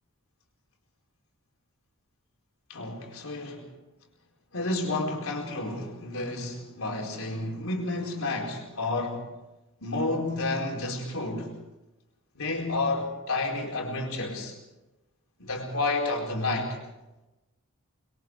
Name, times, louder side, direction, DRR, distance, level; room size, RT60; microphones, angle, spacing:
voice 1, 2.7-3.7 4.5-9.3 9.8-11.5 12.3-14.6 15.4-16.8, left 2 dB, 70° left, 1 dB, 4.5 m, -30 dB
25.5 x 22.5 x 4.8 m, 1.0 s
head